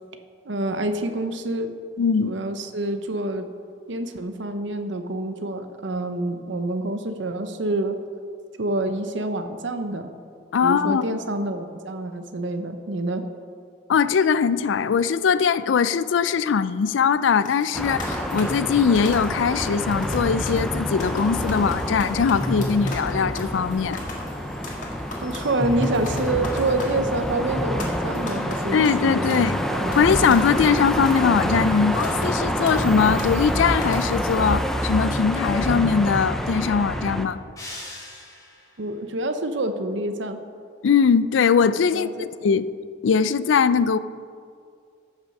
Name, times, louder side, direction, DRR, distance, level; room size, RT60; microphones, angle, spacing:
voice 1, 0.4-1.8 2.2-3.5 3.9-8.0 8.6-10.1 10.6-13.3 25.2-30.3 38.8-40.4 41.9-42.3, right 2 dB, 75° right, 8 dB, 0.8 m, -27 dB
voice 2, 2.0-2.3 10.5-11.1 13.9-24.0 28.7-29.6 30.0-37.4 40.8-42.1 42.4-42.7 43.0-44.0, left 6 dB, 85° left, 15 dB, 0.4 m, -21 dB
sound 1, 17.2-34.5, left 2 dB, 40° left, 1.7 m, -40 dB
sound 2, 17.7-37.3, equal, ahead, 0.5 m, -27 dB
sound 3, 37.6-38.8, left 1 dB, 20° left, 2.6 m, -39 dB
14.5 x 6.1 x 5.4 m, 2.2 s
head